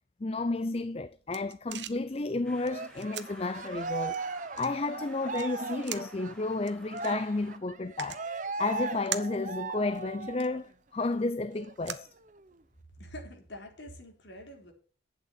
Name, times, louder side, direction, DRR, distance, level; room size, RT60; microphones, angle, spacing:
voice 1, 0.2-8.3 8.6-12.1, left 3 dB, 30° left, 0.5 m, -32 dB
sound 1, 0.8-12.8, right 10 dB, 65° right, 1.1 m, -45 dB
sound 2, 2.4-7.6, left 1 dB, 5° left, 1.6 m, -54 dB
Cheering, 2.6-10.6 11.0-11.2 11.5-12.5, right 4 dB, 40° right, 0.8 m, -38 dB
voice 2, 13.0-14.7, equal, 70° left, 4.1 m, -45 dB
11.5 x 9.0 x 5.8 m
head